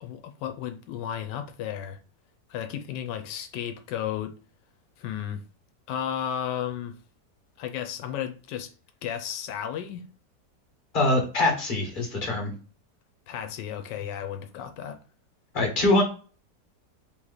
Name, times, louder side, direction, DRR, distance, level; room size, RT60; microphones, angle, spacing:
voice 1, 0.0-2.0 2.5-4.4 5.0-5.4 5.9-7.0 7.6-8.7 9.0-10.0 13.3-15.0, left 9 dB, 85° left, 1.2 m, -33 dB
voice 2, 10.9-12.5 15.5-16.0, left 2 dB, 30° left, 1.5 m, -23 dB
3.9 x 3.1 x 3.8 m
omnidirectional pair, 1.8 m